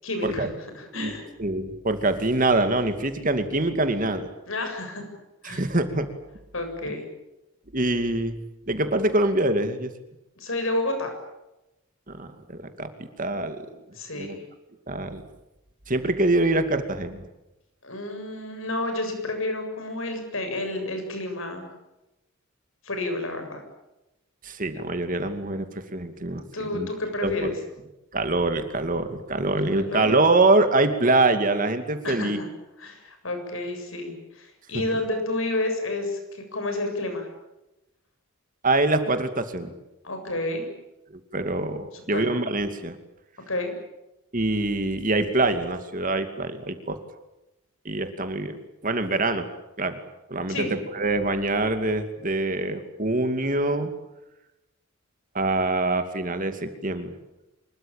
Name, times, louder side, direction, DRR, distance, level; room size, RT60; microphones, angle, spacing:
voice 1, 0.0-1.2 4.5-5.0 5.4-5.6 6.5-7.0 10.4-11.1 14.0-14.4 17.8-21.7 22.8-23.6 26.5-27.5 29.5-30.2 32.0-32.5 32.8-37.3 40.0-40.7 41.9-42.2 43.5-43.7 50.5-50.7, left 2 dB, 70° left, 6 dB, 7.6 m, -30 dB
voice 2, 1.4-4.3 5.4-6.1 7.7-8.4 8.7-9.9 12.1-12.9 13.2-13.7 14.1-14.4 14.9-15.2 15.9-17.2 24.4-26.4 26.7-26.9 27.2-27.6 28.1-32.4 38.6-39.7 41.1-43.0 44.3-47.0 47.8-49.5 49.8-50.0 50.3-53.9 55.3-57.1, right 2 dB, 40° right, 8 dB, 2.5 m, -24 dB
26.0 x 22.5 x 9.0 m, 0.96 s
head